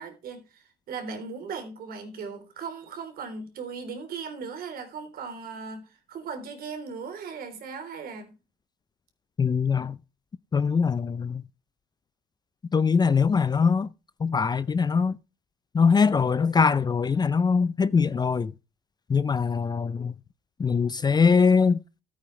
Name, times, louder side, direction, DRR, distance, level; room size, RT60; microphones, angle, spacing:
voice 1, 0.0-8.4, right 5 dB, 60° right, 3.5 m, -38 dB
voice 2, 9.4-10.0 10.5-11.4 12.7-13.9 14.2-15.2 15.7-18.5 19.1-20.1 20.6-21.8, left 5 dB, 25° left, 0.5 m, -22 dB
14.0 x 8.7 x 3.2 m
cardioid pair, 110°, 17 cm